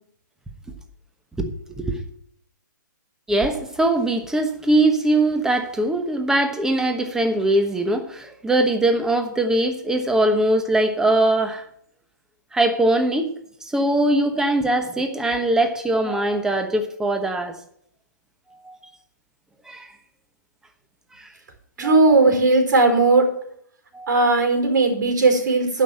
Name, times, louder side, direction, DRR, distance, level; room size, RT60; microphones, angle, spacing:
voice 1, 1.4-2.0 3.3-11.7 12.5-13.3 13.6-17.6 18.5-18.8 19.7-19.9 21.1-21.3 21.8-22.2 23.9-24.3, right 1 dB, 5° right, 1.1 m, -21 dB
voice 2, 21.8-23.3 24.1-25.8, right 3 dB, 70° right, 4.7 m, -17 dB
11.5 x 5.7 x 7.6 m
hypercardioid pair, 145°, 10 cm